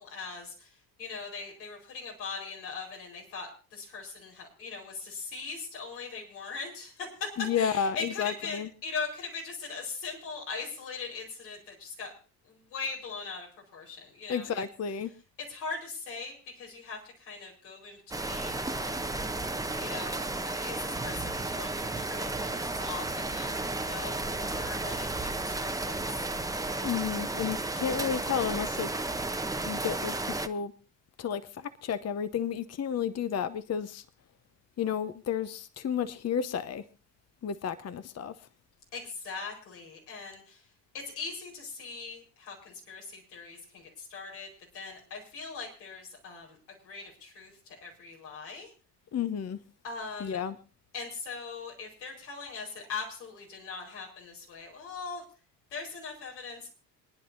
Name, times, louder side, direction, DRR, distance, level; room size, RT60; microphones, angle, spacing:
voice 1, 0.0-7.3 7.5-12.1 12.4-14.6 15.5-19.4 19.8-25.6 25.9-26.2 38.9-40.6 40.9-44.5 44.7-46.6 46.8-48.7 49.8-50.4 50.9-55.2 55.7-56.7, left 4 dB, 85° left, 4.9 m, -40 dB
voice 2, 7.4-8.7 14.3-15.1 26.8-28.9 29.7-30.1 30.4-30.7 31.2-34.0 34.8-36.8 37.4-38.3 49.1-49.6 50.2-50.6, left 8 dB, 30° left, 0.8 m, -31 dB
sound 1, 18.1-30.5, right 2 dB, 5° right, 0.9 m, -33 dB
27.5 x 10.5 x 2.7 m
hypercardioid pair, 60°, 49 cm